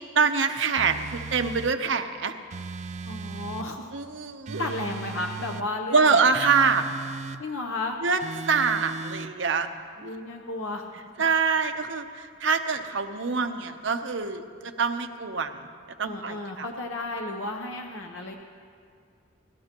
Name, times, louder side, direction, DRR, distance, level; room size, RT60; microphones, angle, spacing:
voice 1, 0.1-2.3 3.9-4.7 5.9-6.9 8.0-8.2 8.5-9.7 10.0-10.1 11.2-15.5 16.0-16.7, right 5 dB, 75° right, 7 dB, 0.8 m, -25 dB
sound 1, 0.8-1.8 2.5-3.7 4.5-5.7 6.3-7.4 8.2-9.3, right 4 dB, 35° right, 0.3 m, -37 dB
voice 2, 3.0-3.9 4.6-6.2 7.4-8.0 10.0-10.8 16.0-18.4, left 2 dB, 85° left, 2 dB, 0.9 m, -33 dB
30.0 x 12.0 x 3.0 m, 2.3 s
head